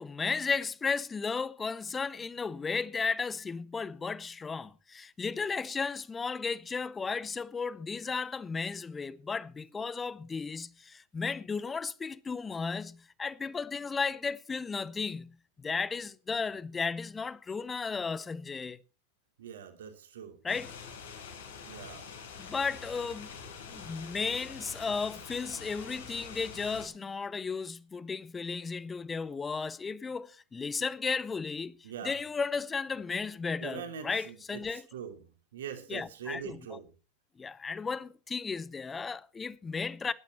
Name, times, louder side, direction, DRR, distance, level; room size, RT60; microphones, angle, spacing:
voice 1, 0.0-18.8 20.4-20.7 22.4-23.4 23.7-34.8 35.9-36.8 37.4-40.1, left 5 dB, 15° left, 0.7 m, -34 dB
voice 2, 19.4-20.4 21.6-22.0 31.8-32.2 33.6-36.9, right 8 dB, 60° right, 3.0 m, -43 dB
sound 1, 20.5-26.9, left 6 dB, 65° left, 4.6 m, -45 dB
20.0 x 11.5 x 3.0 m
figure-of-eight pair, 90°, 0 cm